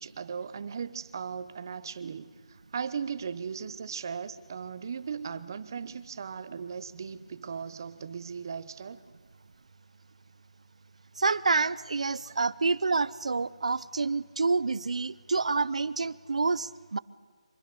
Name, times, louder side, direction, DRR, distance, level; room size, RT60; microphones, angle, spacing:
voice 1, 0.0-2.3 2.7-9.0 12.3-12.4, right 6 dB, 35° right, 0.8 m, -37 dB
voice 2, 11.2-17.0, right 4 dB, 70° right, 0.7 m, -28 dB
25.0 x 20.5 x 6.9 m
hypercardioid pair, 175°, 4 cm